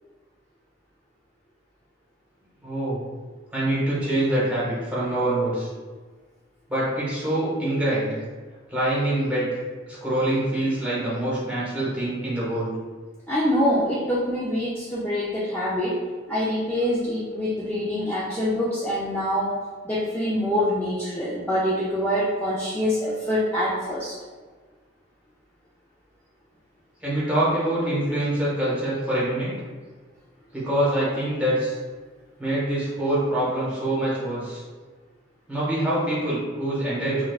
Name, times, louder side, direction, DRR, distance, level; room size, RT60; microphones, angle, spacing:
voice 1, 2.6-3.0 3.5-5.7 6.7-8.1 8.7-9.6 9.9-12.8 27.0-29.5 30.5-31.8 32.4-34.6 35.5-37.2, right 1 dB, 5° right, -9 dB, 1.1 m, -25 dB
voice 2, 13.3-16.0 16.3-24.1, equal, 10° left, -8 dB, 0.4 m, -25 dB
4.4 x 2.3 x 2.3 m, 1.4 s
head